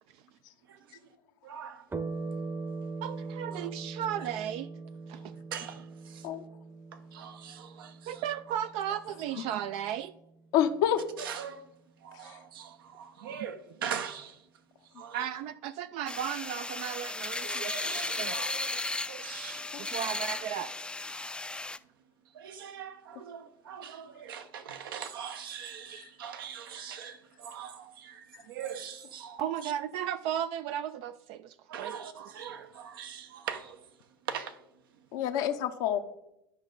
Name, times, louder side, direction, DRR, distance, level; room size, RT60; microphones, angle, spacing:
voice 1, 0.6-1.1 1.4-2.2 2.8-2.9 3.5-3.7 4.2-4.3 5.1-6.4 6.9-8.3 11.2-11.7 12.0-15.4 17.4-20.2 22.0-29.7 31.7-35.2, right 8 dB, 80° right, 0.8 m, -42 dB
sound 1, 1.9-10.8, right 3 dB, 20° right, 0.8 m, -41 dB
voice 2, 3.0-4.7 5.1-5.3 8.1-10.1 15.1-17.7 18.2-18.3 19.9-20.7 29.4-31.9, right 10 dB, 60° right, 0.4 m, -35 dB
voice 3, 10.5-11.0 12.2-12.4 35.1-36.0, left 10 dB, 70° left, 0.7 m, -27 dB
sound 2, 16.1-21.8, left 2 dB, 10° left, 0.4 m, -35 dB
11.5 x 5.2 x 3.8 m
hypercardioid pair, 75°, 11 cm